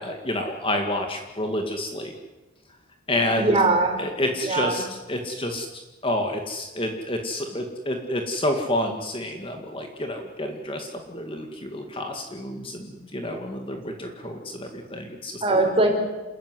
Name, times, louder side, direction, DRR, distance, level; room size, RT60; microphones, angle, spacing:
voice 1, 0.0-2.1 3.1-3.5 4.0-15.4, left 1 dB, 25° left, 3 dB, 2.1 m, -29 dB
voice 2, 3.4-4.0 4.4-4.8 15.4-15.9, right 2 dB, 25° right, 2 dB, 4.6 m, -21 dB
28.5 x 14.0 x 9.8 m, 1.2 s
head